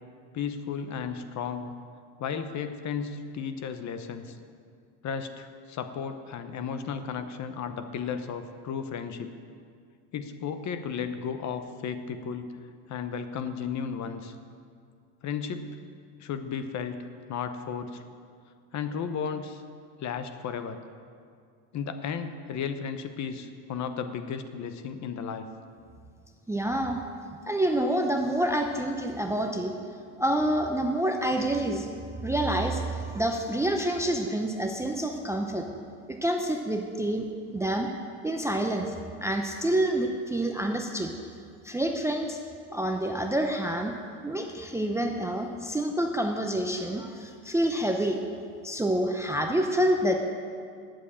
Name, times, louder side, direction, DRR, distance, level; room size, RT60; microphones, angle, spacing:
voice 1, 0.3-1.7 2.2-4.4 5.0-9.3 10.1-12.5 12.9-14.3 15.2-15.8 16.2-17.0 17.3-18.0 18.7-19.6 20.0-20.8 21.7-25.5, left 6 dB, 35° left, 9 dB, 0.9 m, -34 dB
voice 2, 26.5-27.0 27.5-29.7 30.2-31.9 32.2-35.6 36.1-37.3 37.5-37.9 38.2-38.9 39.2-41.1 41.6-42.4 42.7-44.0 44.2-48.2 48.6-50.2, right 1 dB, 5° right, 3 dB, 0.6 m, -27 dB
11.0 x 7.6 x 8.4 m, 2.2 s
supercardioid pair, 125°, 47 cm